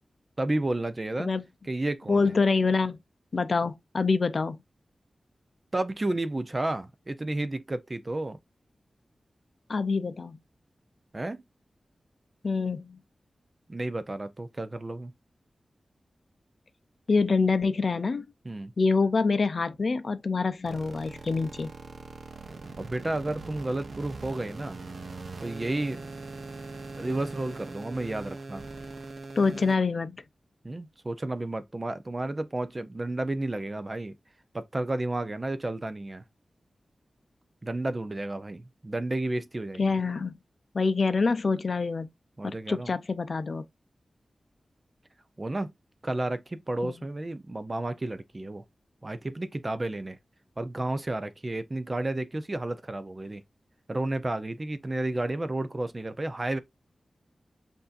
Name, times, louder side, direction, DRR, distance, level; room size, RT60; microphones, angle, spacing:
voice 1, 0.4-1.3 1.7-2.3 5.7-8.4 11.1-11.4 13.7-15.1 18.4-18.7 22.8-24.8 25.4-26.1 27.0-28.6 30.6-34.1 34.5-36.2 37.6-40.0 42.4-42.9 45.4-45.7 46.0-48.6 49.0-50.2 50.6-53.4 53.9-56.6, right 2 dB, 25° right, 0.6 m, -32 dB
voice 2, 2.1-3.0 3.3-4.6 9.7-10.4 12.4-13.0 17.1-18.2 18.8-21.7 29.4-30.2 39.8-40.3 40.7-42.1 42.4-43.7 46.8-46.9, left 4 dB, 55° left, 0.5 m, -26 dB
sound 1, 20.7-29.7, right 3 dB, 60° right, 0.8 m, -41 dB
8.0 x 2.7 x 2.5 m
wide cardioid pair, 130°, 0 cm